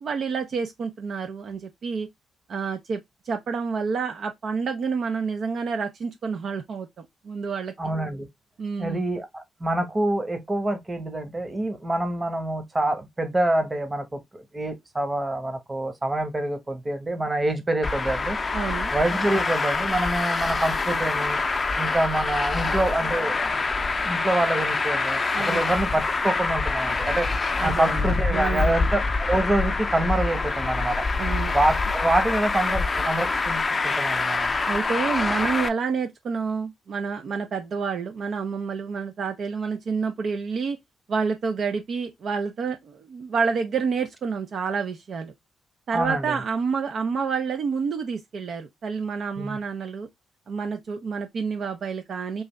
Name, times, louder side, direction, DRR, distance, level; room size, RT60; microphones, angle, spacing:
voice 1, 0.0-2.1 2.5-7.7 8.6-9.0 18.5-18.9 25.3-25.6 27.6-28.9 31.2-31.5 34.7-40.8 41.1-45.3 45.9-50.1 50.5-52.4, right 5 dB, 65° right, 0.6 m, -29 dB
voice 2, 7.8-8.3 8.8-18.4 18.9-21.4 21.8-23.3 24.0-27.3 27.6-31.0 31.5-34.6 45.9-46.4 49.4-49.6, right 1 dB, 25° right, 1.1 m, -26 dB
Traffic noise roadway noise, 17.8-35.7, left 3 dB, 40° left, 0.5 m, -25 dB
3.4 x 2.6 x 3.2 m
supercardioid pair, 50°, 0 cm